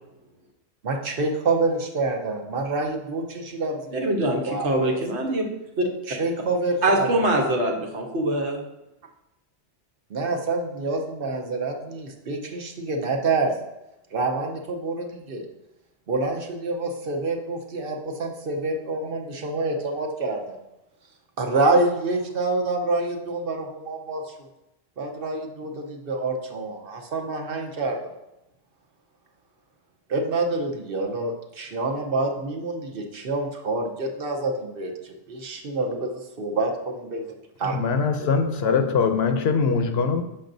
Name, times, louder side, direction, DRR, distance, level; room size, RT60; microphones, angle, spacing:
voice 1, 0.8-5.0 6.1-7.3 10.1-13.6 14.1-15.5 16.1-20.6 21.4-24.3 25.0-28.0 30.1-37.8 38.2-38.3 38.6-38.8, right 3 dB, 60° right, 2 dB, 1.0 m, -27 dB
voice 2, 3.9-5.5 5.8-5.9 6.8-8.6, right 1 dB, 80° right, 1 dB, 1.3 m, -23 dB
voice 3, 37.7-40.2, left 5 dB, 70° left, 7 dB, 0.8 m, -22 dB
6.8 x 5.5 x 2.6 m, 0.88 s
omnidirectional pair, 1.1 m